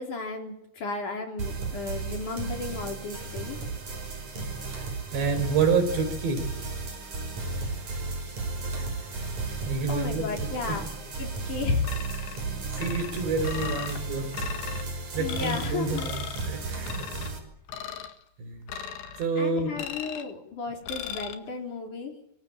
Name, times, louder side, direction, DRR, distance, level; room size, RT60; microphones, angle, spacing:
voice 1, 0.0-3.7 9.9-11.9 15.2-16.1 19.4-22.1, left 4 dB, 45° left, 3 dB, 5.1 m, -33 dB
sound 1, 1.4-17.4, right 3 dB, 45° right, 6.8 m, -34 dB
voice 2, 5.1-6.5 9.6-10.8 12.8-14.5 15.1-17.3 18.4-18.6 19.2-19.7, right 4 dB, 80° right, 8 dB, 6.6 m, -28 dB
sound 2, 11.8-12.4 12.8-14.0 14.3-14.8 15.3-15.7 16.0-16.5 16.9-17.3 17.7-18.1 18.7-19.3 19.8-20.3 20.9-21.3, left 8 dB, 75° left, 3.9 m, -37 dB
26.0 x 24.5 x 8.8 m, 0.78 s
omnidirectional pair, 4.9 m